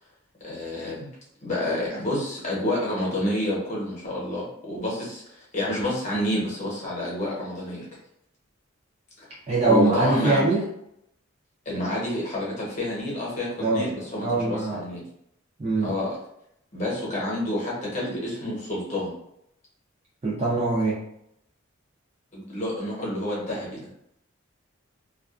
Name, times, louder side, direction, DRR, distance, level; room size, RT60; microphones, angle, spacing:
voice 1, 0.4-1.1 1.4-7.9 9.2-9.3 9.7-10.4 11.7-15.0 15.8-16.1 16.7-19.1 22.3-23.9, left 1 dB, 35° left, -5 dB, 0.9 m, -29 dB
voice 2, 9.5-10.6 13.6-13.9 14.2-14.8 15.6-15.9 20.2-21.0, right 3 dB, 30° right, -6 dB, 0.5 m, -22 dB
2.3 x 2.2 x 2.4 m, 0.75 s
head